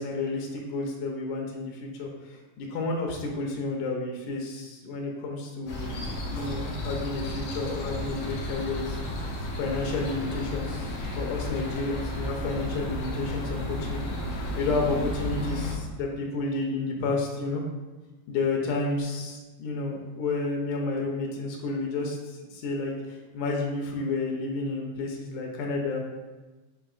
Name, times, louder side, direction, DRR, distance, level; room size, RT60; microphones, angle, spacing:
voice 1, 0.0-9.0 9.6-17.6 18.3-26.0, left 3 dB, 90° left, 0 dB, 2.1 m, -31 dB
sound 1, 5.7-15.7, left 1 dB, 70° left, 1.4 m, -33 dB
6.9 x 3.0 x 2.4 m, 1.2 s
omnidirectional pair, 3.3 m